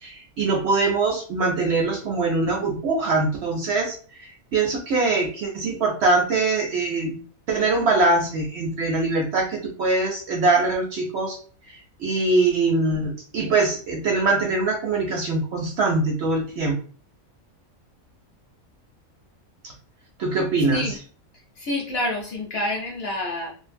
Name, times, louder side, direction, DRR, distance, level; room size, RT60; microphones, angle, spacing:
voice 1, 0.0-7.2 7.5-11.4 11.7-16.8 19.6-19.7 20.2-20.9, right 3 dB, 65° right, 2 dB, 0.7 m, -23 dB
voice 2, 21.6-23.5, left 1 dB, 55° left, -1 dB, 0.8 m, -27 dB
2.5 x 2.5 x 2.5 m, 0.41 s
omnidirectional pair, 1.4 m